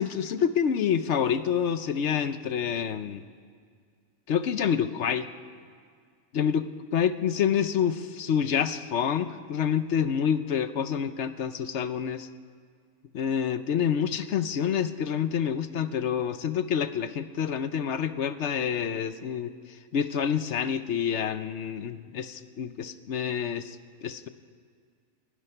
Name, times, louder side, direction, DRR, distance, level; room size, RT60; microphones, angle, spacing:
voice 1, 0.0-3.2 4.3-5.3 6.3-6.7 6.9-12.3 13.1-19.5 19.9-23.8 24.0-24.3, left 8 dB, 65° left, 11 dB, 0.9 m, -27 dB
12.5 x 11.0 x 9.8 m, 2.1 s
omnidirectional pair, 1.4 m